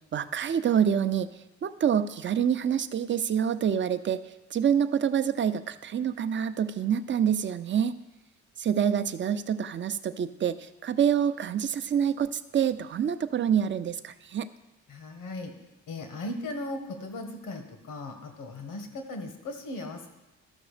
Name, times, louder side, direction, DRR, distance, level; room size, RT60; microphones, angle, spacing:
voice 1, 0.1-1.3 1.6-4.2 4.5-8.0 8.6-14.5, right 8 dB, 40° right, 11 dB, 0.6 m, -26 dB
voice 2, 14.9-15.5 15.9-20.1, left 2 dB, 80° left, 5 dB, 1.6 m, -37 dB
13.5 x 6.2 x 5.0 m, 0.98 s
cardioid pair, 90°, 30 cm